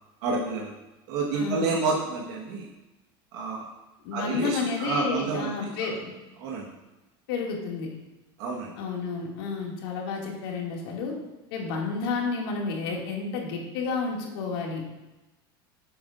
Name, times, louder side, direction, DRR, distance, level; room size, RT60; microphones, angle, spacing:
voice 1, 0.2-0.7 1.1-2.7 3.3-3.7 4.1-5.7 6.4-6.7 8.4-8.7, right 3 dB, 70° right, -3 dB, 1.4 m, -29 dB
voice 2, 1.3-1.7 4.0-6.1 7.3-7.9 8.8-11.2 11.5-14.8, left 4 dB, 75° left, -1 dB, 2.3 m, -31 dB
11.5 x 7.7 x 2.5 m, 1.1 s
supercardioid pair, 110°, 12 cm